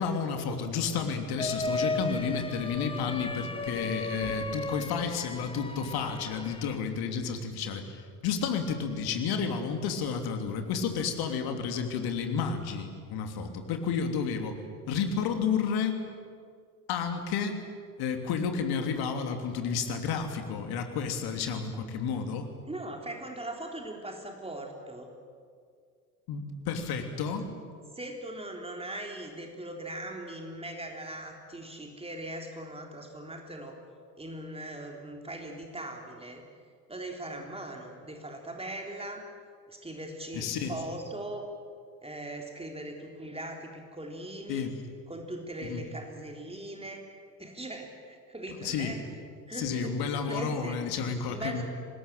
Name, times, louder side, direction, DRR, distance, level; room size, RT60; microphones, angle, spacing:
voice 1, 0.0-14.6 14.9-16.0 16.9-17.6 18.0-22.5 26.3-27.5 40.3-40.7 44.5-44.8 45.6-45.8 48.6-48.9 49.5-51.6, left 6 dB, 50° left, 5 dB, 3.2 m, -31 dB
sound 1, 1.4-6.8, left 2 dB, 10° left, 1.8 m, -35 dB
voice 2, 22.7-25.1 27.1-27.2 28.0-33.8 34.2-36.4 36.9-39.2 39.7-41.4 42.0-44.7 45.1-47.0 47.4-49.0 49.5-50.0 50.3-50.8 51.3-51.6, right 1 dB, 10° right, 2 dB, 3.6 m, -40 dB
25.5 x 20.5 x 9.1 m, 2.1 s
figure-of-eight pair, 65°, 47 cm